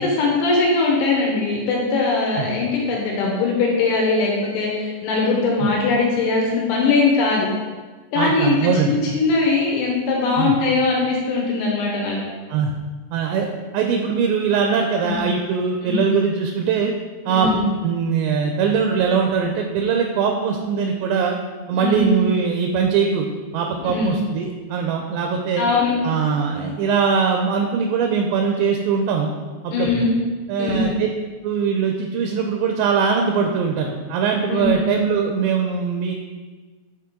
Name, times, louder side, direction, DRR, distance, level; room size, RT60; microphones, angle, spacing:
voice 1, 0.0-7.5 8.1-12.2 15.0-15.2 15.8-16.1 17.3-17.7 21.7-22.1 23.8-24.1 25.6-26.1 29.7-30.1 30.6-30.9 34.5-34.7, left 3 dB, 75° left, -2 dB, 2.8 m, -20 dB
voice 2, 8.2-9.0 10.4-10.5 12.5-12.7 13.1-13.5 13.7-16.9 17.3-17.5 17.8-21.4 21.7-23.3 23.5-25.6 26.0-29.3 29.6-30.1 30.5-31.1 31.4-36.1, right 6 dB, 80° right, 3 dB, 2.6 m, -21 dB
8.5 x 4.3 x 3.7 m, 1.4 s
omnidirectional pair, 5.3 m